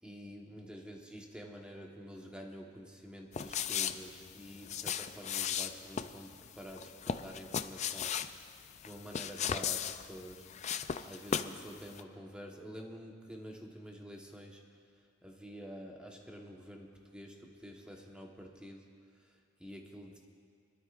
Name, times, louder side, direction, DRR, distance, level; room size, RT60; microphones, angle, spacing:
voice 1, 0.0-8.4 8.8-10.5 11.0-14.8 15.2-20.2, equal, 5° right, 0 dB, 1.2 m, -49 dB
sound 1, 3.3-11.6 11.9-12.0, left 8 dB, 35° left, 0.3 m, -37 dB
24.0 x 12.5 x 2.5 m, 2.2 s
head